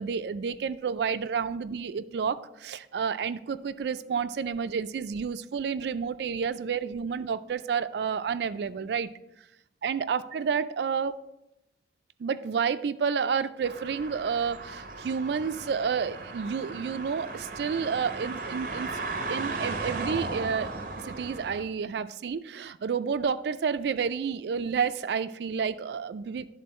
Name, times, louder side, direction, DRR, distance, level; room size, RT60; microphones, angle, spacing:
voice 1, 0.0-9.1 9.8-11.2 12.2-18.9 19.3-20.7 21.0-26.5, right 6 dB, 70° right, 13 dB, 0.3 m, -30 dB
sound 1, 13.6-21.6, right 3 dB, 50° right, 0.7 m, -36 dB
11.0 x 3.8 x 4.2 m, 0.88 s
head